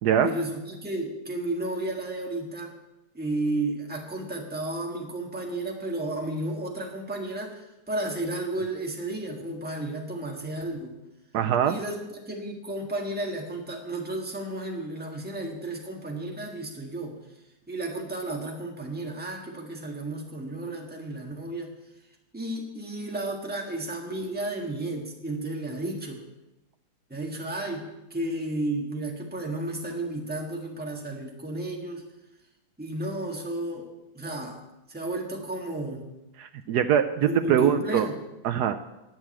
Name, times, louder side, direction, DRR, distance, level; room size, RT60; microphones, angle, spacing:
voice 1, 0.2-2.7 3.1-10.9 11.6-17.2 17.7-21.7 22.3-26.2 27.1-32.0 32.8-33.9 34.1-34.6 34.9-36.0 37.2-38.2, right 1 dB, 5° right, 0 dB, 1.4 m, -33 dB
voice 2, 11.3-11.8 36.4-38.1 38.4-38.8, right 9 dB, 75° right, 8 dB, 0.9 m, -23 dB
10.5 x 6.4 x 8.7 m, 0.98 s
omnidirectional pair, 2.2 m